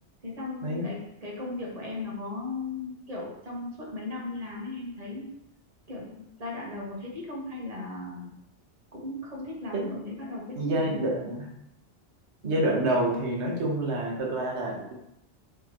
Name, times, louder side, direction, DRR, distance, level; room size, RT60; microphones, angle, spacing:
voice 1, 0.2-5.3 5.9-8.3 8.9-11.3 12.4-12.7, left 3 dB, 35° right, -3 dB, 1.2 m, -37 dB
voice 2, 10.5-11.5 12.4-15.0, right 1 dB, 85° right, -2 dB, 1.3 m, -28 dB
4.4 x 3.5 x 2.9 m, 0.81 s
omnidirectional pair, 1.1 m